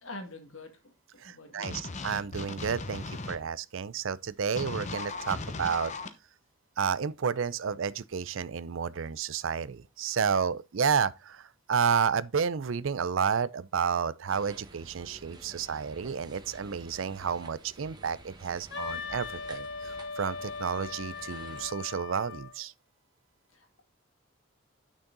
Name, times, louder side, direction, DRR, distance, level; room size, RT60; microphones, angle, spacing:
voice 1, 0.0-1.9 3.4-3.5 23.5-23.8, left 2 dB, 80° left, 2.1 m, -46 dB
voice 2, 1.2-5.9 6.8-22.7, right 6 dB, 75° right, 0.5 m, -31 dB
sound 1, 1.6-3.4 4.6-6.1, left 3 dB, 35° left, 0.9 m, -37 dB
sound 2, 14.3-21.7, right 2 dB, 20° right, 1.3 m, -50 dB
Wind instrument woodwind instrument, 18.7-22.5, left 5 dB, 60° left, 1.5 m, -39 dB
8.7 x 6.3 x 3.9 m
head